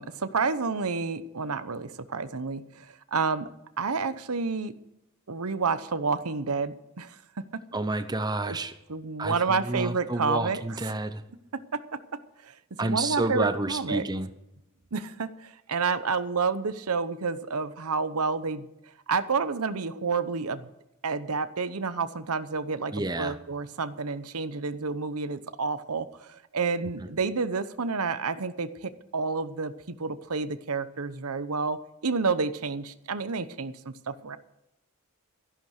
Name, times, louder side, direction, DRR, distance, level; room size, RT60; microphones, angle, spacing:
voice 1, 0.0-3.5 3.8-4.7 5.3-7.2 7.5-7.6 8.5-8.6 8.9-10.6 11.7-12.0 12.4-14.1 14.9-18.7 19.1-20.7 21.0-34.4, right 4 dB, 85° right, 12 dB, 0.9 m, -30 dB
voice 2, 7.7-8.8 9.2-11.2 12.8-14.3 22.9-23.4, right 2 dB, 20° right, 10 dB, 0.7 m, -29 dB
13.5 x 11.0 x 6.6 m, 0.89 s
head